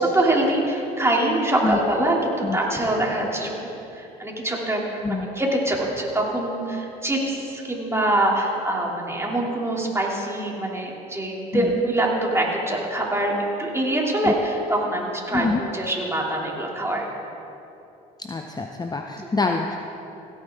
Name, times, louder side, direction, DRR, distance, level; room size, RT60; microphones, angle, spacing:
voice 1, 0.0-4.8 5.1-13.3 13.6-17.1, right 1 dB, 15° right, -2 dB, 2.8 m, -24 dB
voice 2, 15.3-15.6 18.2-19.8, left 3 dB, 20° left, 4 dB, 0.7 m, -25 dB
16.5 x 9.1 x 3.7 m, 2.9 s
hypercardioid pair, 60°, 20 cm